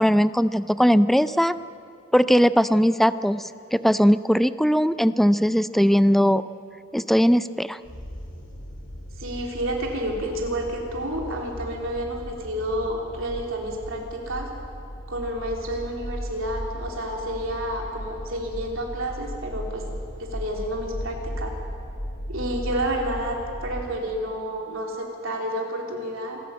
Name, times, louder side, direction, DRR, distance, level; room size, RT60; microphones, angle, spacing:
voice 1, 0.0-1.6 2.1-6.4 6.9-7.8, equal, ahead, 14 dB, 0.4 m, -19 dB
sound 1, 7.8-23.9, equal, 60° left, 3.2 m, -36 dB
voice 2, 9.2-14.5 15.1-19.8 20.2-21.5 22.3-26.4, right 1 dB, 70° right, 0 dB, 3.5 m, -30 dB
26.0 x 12.5 x 8.7 m, 2.6 s
head